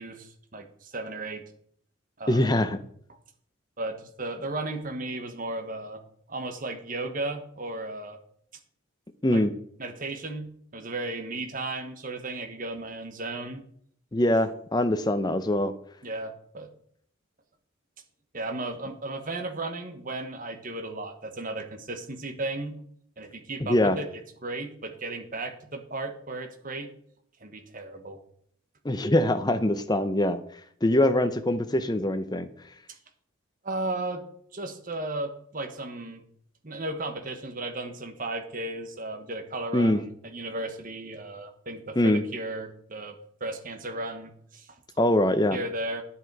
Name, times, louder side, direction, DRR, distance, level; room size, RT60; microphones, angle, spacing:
voice 1, 0.0-1.4 2.2-2.5 3.1-3.2 3.8-6.0 6.3-8.2 9.3-9.4 9.8-13.6 16.0-16.7 18.3-22.8 23.2-26.9 27.4-28.2 32.9-33.0 33.6-34.2 34.5-36.2 36.6-44.8 45.5-46.0, right 2 dB, 40° right, 6 dB, 1.3 m, -35 dB
voice 2, 2.3-2.8 9.2-9.5 14.1-15.7 23.6-24.0 28.8-30.4 30.8-32.5 39.7-40.0 42.0-42.2 45.0-45.6, left 1 dB, 20° left, 10 dB, 0.7 m, -23 dB
10.0 x 7.6 x 4.7 m, 0.63 s
head